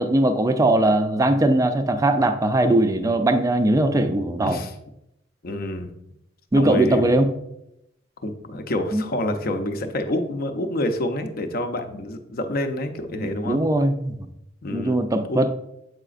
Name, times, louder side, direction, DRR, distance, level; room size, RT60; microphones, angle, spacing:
voice 1, 0.0-4.6 6.5-7.3 8.9-9.0 13.4-14.2 14.7-15.5, right 1 dB, 15° right, 8 dB, 0.4 m, -20 dB
voice 2, 5.4-5.9 6.6-7.1 8.2-13.6 14.6-15.0 15.3-15.4, left 1 dB, 50° left, 7 dB, 0.6 m, -27 dB
7.8 x 4.9 x 2.5 m, 0.83 s
head